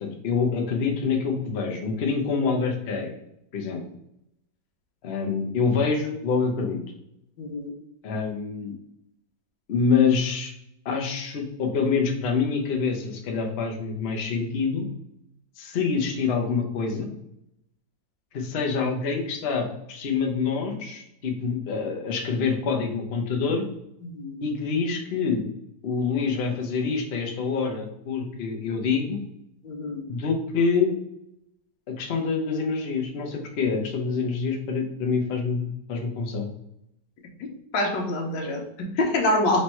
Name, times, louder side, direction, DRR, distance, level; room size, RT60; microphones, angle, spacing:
voice 1, 0.0-3.1 3.5-3.8 5.0-6.8 8.0-8.7 9.7-10.5 10.8-14.9 15.6-17.1 18.3-23.6 24.4-25.4 25.8-29.2 30.1-31.0 31.9-36.5, left 5 dB, 55° left, 3 dB, 0.7 m, -26 dB
voice 2, 7.4-7.7 24.1-24.3 29.6-30.0 37.4-39.6, left 1 dB, 80° left, 1 dB, 1.5 m, -26 dB
3.3 x 3.1 x 4.3 m, 0.80 s
omnidirectional pair, 2.0 m